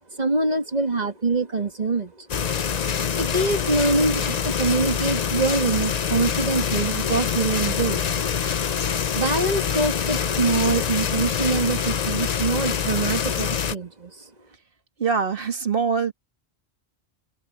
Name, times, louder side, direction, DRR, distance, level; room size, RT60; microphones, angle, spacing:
voice 1, 0.2-2.3 3.2-8.1 9.1-14.2, right 3 dB, 40° right, 2.0 m, -24 dB
sound 1, 2.3-13.7, left 7 dB, 45° left, 0.7 m, -25 dB
voice 2, 15.0-16.1, right 5 dB, 55° right, 2.1 m, -23 dB
open air
omnidirectional pair, 1.1 m